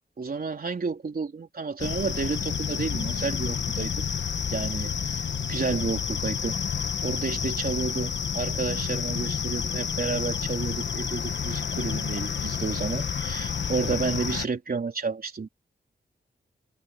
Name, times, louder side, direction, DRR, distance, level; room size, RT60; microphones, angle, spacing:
voice 1, 0.2-4.1 4.5-5.2 5.5-6.6 7.0-15.5, right 4 dB, 50° right, 3.9 m, -31 dB
sound 1, 1.8-14.5, left 7 dB, 70° left, 1.3 m, -30 dB
wide cardioid pair, 135°, 19 cm